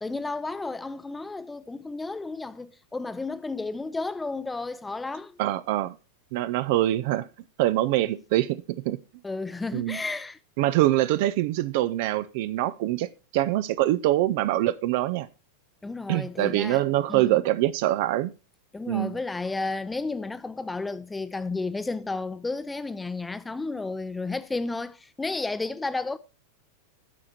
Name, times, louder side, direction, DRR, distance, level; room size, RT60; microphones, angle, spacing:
voice 1, 0.0-5.4 9.2-10.4 15.8-16.8 17.1-17.4 18.7-26.2, left 3 dB, 10° left, 0.6 m, -32 dB
voice 2, 5.4-5.9 6.3-7.3 7.6-9.0 9.7-10.0 10.6-13.1 13.3-15.3 16.1-18.3 18.9-19.2, right 15 dB, 50° right, 0.5 m, -24 dB
12.5 x 4.9 x 4.4 m
figure-of-eight pair, 90°, 0 cm